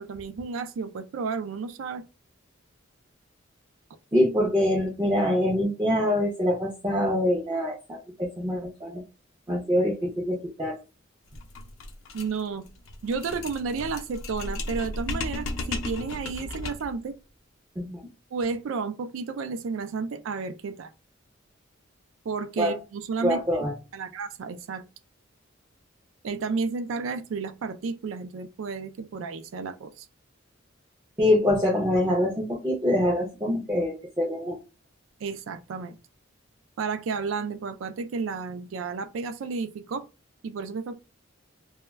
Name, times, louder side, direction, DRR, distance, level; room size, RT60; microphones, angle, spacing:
voice 1, 0.0-2.0 12.1-12.7 13.0-17.2 18.3-20.9 22.3-23.4 23.9-24.8 26.2-30.1 35.2-36.0 36.8-40.0 40.4-40.9, right 4 dB, 80° right, 0.4 m, -32 dB
voice 2, 4.1-9.0 9.5-10.8 17.8-18.0 22.6-22.8 23.2-23.7 31.2-34.6, left 1 dB, 15° right, 0.4 m, -25 dB
sound 1, 11.3-17.0, left 2 dB, 85° left, 0.5 m, -35 dB
2.2 x 2.1 x 3.3 m
head